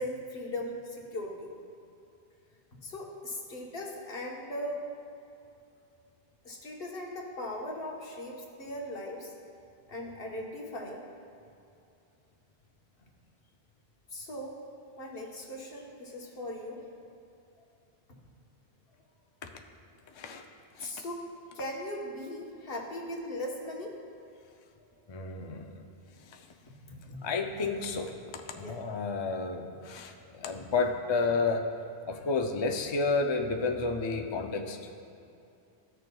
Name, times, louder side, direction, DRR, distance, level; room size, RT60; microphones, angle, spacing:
voice 1, 0.0-1.5 2.8-4.8 6.4-9.3 9.9-11.0 14.1-14.6 15.0-16.8 20.8-24.0 25.0-25.1 26.6-27.2 28.5-28.8 29.7-29.8, left 1 dB, 65° left, -1 dB, 1.3 m, -39 dB
voice 2, 25.1-25.8 26.3-26.4 27.2-31.7 32.1-34.8, left 4 dB, 40° left, 4 dB, 0.4 m, -31 dB
15.0 x 6.6 x 2.2 m, 2.7 s
omnidirectional pair, 1.0 m